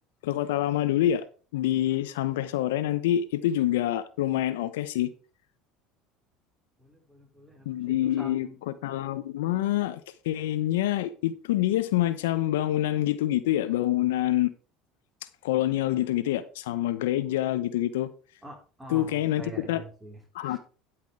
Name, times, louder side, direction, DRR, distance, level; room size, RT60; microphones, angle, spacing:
voice 1, 0.2-1.2 1.5-5.1 7.7-14.5 15.4-18.1 18.9-19.8 20.3-20.6, left 13 dB, 80° left, 0.8 m, -26 dB
voice 2, 6.8-8.5 18.4-20.6, right 1 dB, 10° right, 4.6 m, -45 dB
12.0 x 6.1 x 4.7 m
hypercardioid pair, 85°, 0 cm